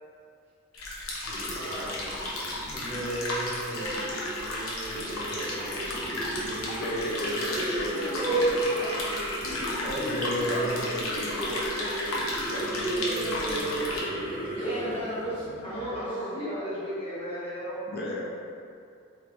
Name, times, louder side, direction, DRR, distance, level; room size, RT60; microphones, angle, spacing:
sound 1, 0.7-14.0, left 2 dB, 85° left, 0.6 m, -34 dB
sound 2, 1.2-16.1, right 2 dB, 25° right, 1.1 m, -33 dB
voice 1, 1.5-1.9 3.7-4.0 5.2-6.0 14.3-14.9, right 2 dB, 60° right, -4 dB, 0.6 m, -40 dB
voice 2, 6.3-8.7 9.4-14.1 17.9-18.3, left 1 dB, 50° left, -5 dB, 0.5 m, -36 dB
voice 3, 14.6-15.3 15.6-17.8, equal, 25° left, -11 dB, 1.1 m, -33 dB
3.4 x 3.1 x 2.5 m, 2.4 s
head